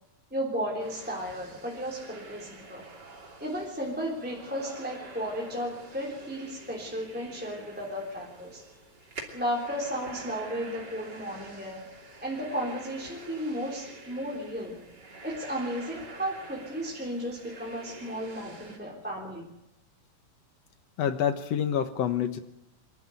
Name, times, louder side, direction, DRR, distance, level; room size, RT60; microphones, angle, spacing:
voice 1, 0.3-2.8 3.4-8.6 9.3-11.8 12.2-14.8 15.2-19.4, equal, 5° right, -3 dB, 3.4 m, -34 dB
sound 1, 0.8-18.8, right 3 dB, 35° right, 3.5 m, -47 dB
voice 2, 21.0-22.4, left 9 dB, 65° left, 10 dB, 2.1 m, -27 dB
25.0 x 12.0 x 9.2 m, 0.86 s
omnidirectional pair, 3.3 m